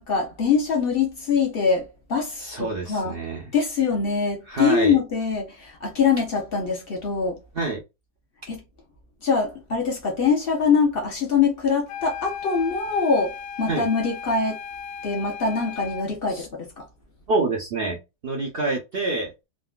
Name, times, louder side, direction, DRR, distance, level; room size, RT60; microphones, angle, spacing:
voice 1, 0.0-3.2 3.5-7.4 8.5-8.6 9.2-14.6 15.0-16.9, left 5 dB, 55° left, 0.6 m, -23 dB
voice 2, 2.4-3.4 4.5-5.0 7.5-7.8 13.7-13.9 16.3-16.5 17.3-18.0 18.2-19.3, right 3 dB, 70° right, 0.5 m, -26 dB
sound 1, 11.9-16.1, left 7 dB, 90° left, 1.3 m, -36 dB
3.6 x 2.2 x 2.3 m
omnidirectional pair, 1.9 m